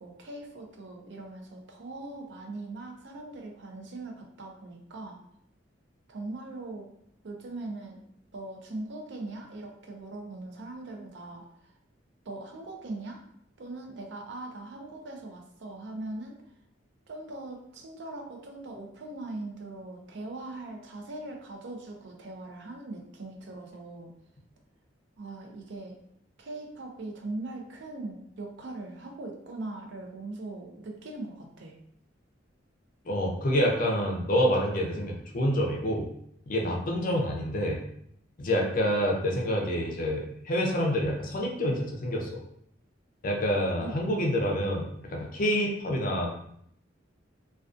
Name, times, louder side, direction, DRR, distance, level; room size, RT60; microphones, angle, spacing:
voice 1, 0.0-5.2 6.1-6.9 7.2-8.0 8.3-11.7 12.3-13.2 13.6-16.4 17.1-24.1 25.2-26.0 26.4-31.8 43.8-43.9 45.6-45.7, right 2 dB, 65° right, 2 dB, 0.5 m, -40 dB
voice 2, 33.0-36.1 36.5-37.8 38.4-42.4 43.2-46.3, equal, 45° left, 0 dB, 0.4 m, -27 dB
2.3 x 2.2 x 2.5 m, 0.72 s
head